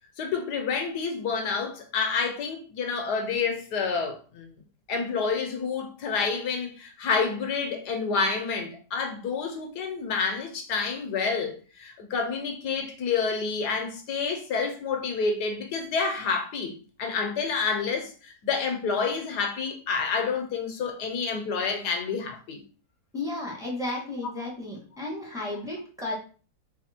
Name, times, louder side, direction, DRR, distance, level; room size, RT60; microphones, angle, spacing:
voice 1, 0.2-4.5 4.9-22.6, left 5 dB, 65° left, 1.3 m, -29 dB
voice 2, 23.1-26.1, left 2 dB, ahead, 1.1 m, -33 dB
4.2 x 2.7 x 4.3 m
omnidirectional pair, 2.1 m